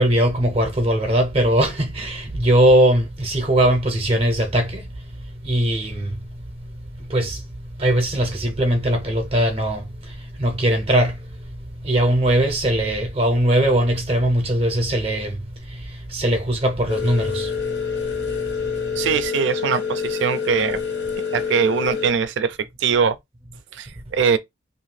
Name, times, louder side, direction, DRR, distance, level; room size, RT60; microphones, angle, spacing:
voice 1, 0.0-4.9 5.4-6.1 7.1-7.4 7.8-9.8 10.4-11.2 11.8-15.4 15.7-15.8 16.1-17.5, right 1 dB, 30° right, 0.6 m, -20 dB
sound 1, 16.9-22.1, left 6 dB, 70° left, 1.0 m, -27 dB
voice 2, 19.0-20.8 21.3-23.2 23.7-24.4, right 6 dB, 80° right, 0.3 m, -22 dB
2.7 x 2.4 x 3.2 m
head